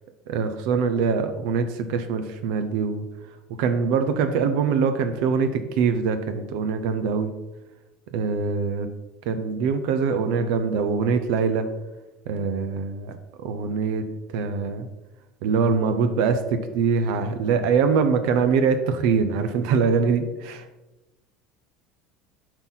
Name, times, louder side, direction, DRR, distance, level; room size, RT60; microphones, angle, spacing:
voice 1, 0.3-3.0 3.6-7.3 8.1-8.9 9.3-11.7 12.3-13.1 13.4-14.0 14.3-14.9 15.4-20.7, right 5 dB, 70° right, 9 dB, 0.7 m, -23 dB
7.6 x 4.5 x 4.1 m, 1.0 s
supercardioid pair, 100°, 0 cm